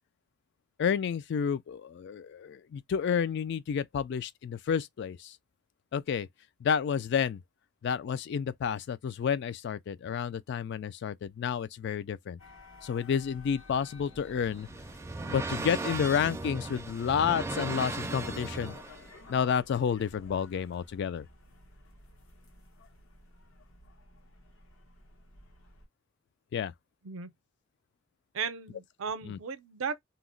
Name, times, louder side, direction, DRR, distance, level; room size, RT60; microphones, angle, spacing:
voice 1, 0.8-5.4 5.9-6.3 6.6-7.4 7.8-12.4 12.8-14.7 15.3-18.8 19.3-21.3 26.5-26.7 29.3-29.4, left 7 dB, 55° left, 0.3 m, -30 dB
sound 1, 12.4-25.9, left 2 dB, 80° left, 1.0 m, -54 dB
sound 2, 14.1-19.1, right 2 dB, 15° right, 0.4 m, -37 dB
voice 2, 28.3-30.0, right 6 dB, 80° right, 0.5 m, -36 dB
2.8 x 2.1 x 3.7 m
head